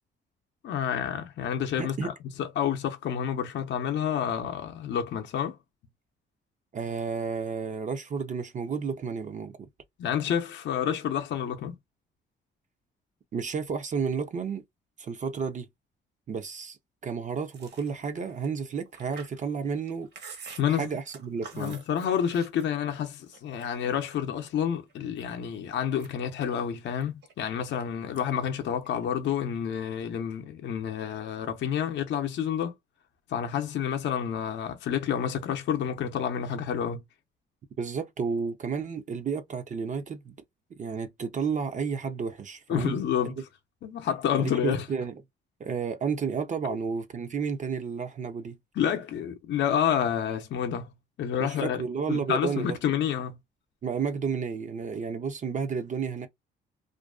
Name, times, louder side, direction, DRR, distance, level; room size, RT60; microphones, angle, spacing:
voice 1, 0.6-2.1 2.4-5.6 10.0-11.7 20.6-20.9 21.5-32.7 33.3-37.0 42.7-43.4 43.8-44.9 48.8-50.9 51.2-51.8 52.1-53.3, left 8 dB, 65° left, 0.6 m, -29 dB
voice 2, 1.8-2.1 6.7-9.7 13.3-14.6 15.0-15.7 16.3-16.8 17.0-20.1 20.7-21.8 37.8-40.3 40.8-43.0 43.2-43.3 44.4-45.1 45.6-48.6 51.4-52.8 53.8-56.3, right 6 dB, 40° right, 0.5 m, -31 dB
Chewing mastication, 17.5-23.0 23.3-24.4 24.9-25.5 25.8-27.8 28.1-28.5 28.7-29.6, right 5 dB, 60° right, 1.0 m, -48 dB
2.5 x 2.2 x 2.2 m
cardioid pair, 90°, 20 cm